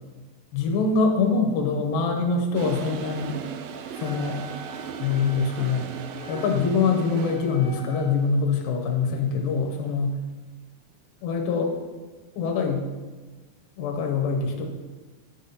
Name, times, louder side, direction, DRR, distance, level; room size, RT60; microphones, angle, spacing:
voice 1, 0.5-3.4 4.0-4.4 5.0-5.9 6.3-10.2 11.2-11.7 12.4-12.9 13.8-14.7, left 4 dB, 70° left, 2 dB, 2.6 m, -24 dB
Toilet flush, 2.5-7.8, right 7 dB, 90° right, 2.0 m, -37 dB
Wind instrument woodwind instrument, 3.9-8.1, equal, 60° right, 2.3 m, -45 dB
10.0 x 6.2 x 4.1 m, 1.3 s
omnidirectional pair, 4.8 m